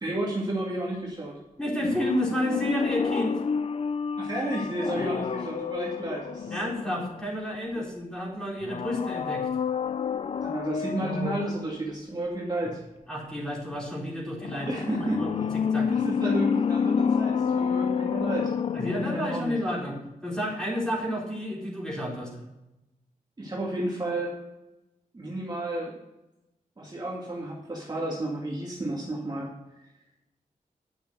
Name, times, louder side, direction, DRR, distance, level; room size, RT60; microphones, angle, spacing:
voice 1, 0.0-1.3 4.2-6.6 7.8-7.9 10.4-12.8 14.7-15.5 15.9-18.5 19.0-19.5 23.4-24.3 25.1-25.9 26.8-29.5, right 1 dB, 30° right, -4 dB, 2.3 m, -31 dB
voice 2, 1.6-3.4 6.5-9.5 13.1-15.5 15.7-15.9 18.7-22.3, equal, 5° left, -4 dB, 4.0 m, -31 dB
sound 1, 1.8-7.6 8.6-11.6 14.4-19.6 19.9-20.0, left 6 dB, 45° left, 0.4 m, -29 dB
10.5 x 7.0 x 6.4 m, 0.94 s
wide cardioid pair, 150°, 14 cm